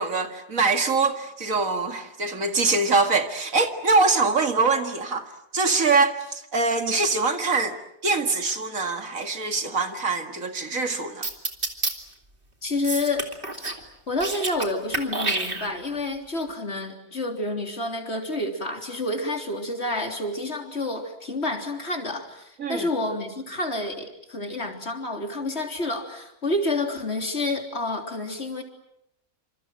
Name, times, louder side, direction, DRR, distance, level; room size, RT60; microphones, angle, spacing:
voice 1, 0.0-11.3 22.6-22.9, right 3 dB, 65° right, 2.4 m, -24 dB
sound 1, 11.2-11.9 12.8-13.8 14.1-14.7 14.9-16.0, right 2 dB, 40° right, 2.9 m, -28 dB
voice 2, 12.6-13.3 14.1-28.6, left 2 dB, 45° left, 3.8 m, -29 dB
28.0 x 27.0 x 7.7 m
omnidirectional pair, 1.5 m